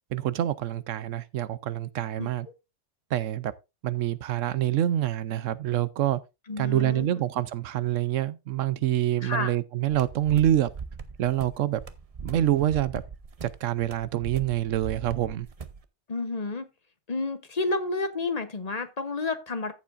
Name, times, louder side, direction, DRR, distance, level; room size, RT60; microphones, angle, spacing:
voice 1, 0.1-2.5 3.1-3.5 3.8-6.2 6.6-10.7 11.2-11.8 12.2-13.0 13.4-15.5, right 12 dB, 80° right, 1.0 m, -26 dB
voice 2, 2.2-2.5 6.5-7.2 9.2-9.5 16.1-16.6 17.1-19.7, left 3 dB, 35° left, 0.9 m, -30 dB
sound 1, 9.9-15.8, right 5 dB, 35° right, 0.6 m, -40 dB
14.0 x 7.2 x 2.5 m
omnidirectional pair, 1.3 m